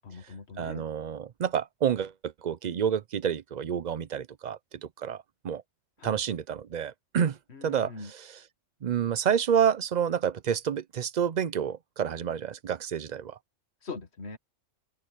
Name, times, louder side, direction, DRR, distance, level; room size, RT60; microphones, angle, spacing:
voice 1, 0.0-0.9 6.0-6.2 7.5-8.1 13.8-14.4, left 4 dB, 55° left, 1.8 m, -41 dB
voice 2, 0.6-4.6 5.0-5.6 6.0-7.9 8.8-13.4, right 8 dB, 55° right, 0.5 m, -29 dB
open air
omnidirectional pair, 1.4 m